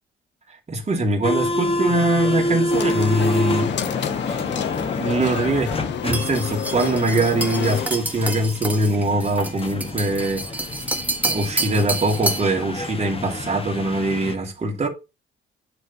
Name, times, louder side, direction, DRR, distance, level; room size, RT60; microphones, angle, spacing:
voice 1, 0.7-3.7 5.0-5.7 6.0-10.5 11.2-14.9, right 2 dB, 30° right, 2.3 m, -22 dB
sound 1, 1.2-14.3, left 1 dB, 30° left, 1.3 m, -28 dB
sound 2, 2.7-7.9, left 9 dB, 65° left, 0.8 m, -29 dB
sound 3, 6.1-12.6, right 2 dB, 5° right, 1.6 m, -29 dB
9.1 x 3.3 x 5.5 m
cardioid pair, 90°, 20 cm